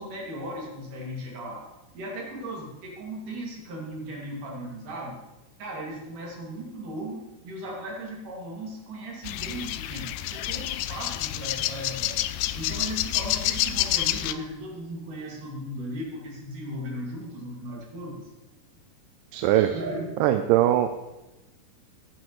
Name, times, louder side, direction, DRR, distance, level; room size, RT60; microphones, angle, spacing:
voice 1, 0.0-1.7 1.9-5.2 5.6-12.2 12.5-18.3 19.5-20.0, right 1 dB, 70° right, -2 dB, 4.0 m, -37 dB
sound 1, 9.2-14.3, left 14 dB, 80° left, 2.1 m, -28 dB
voice 2, 19.3-19.7 20.2-20.9, right 13 dB, 90° right, 7 dB, 2.3 m, -21 dB
14.0 x 10.5 x 3.1 m, 1.0 s
omnidirectional pair, 3.8 m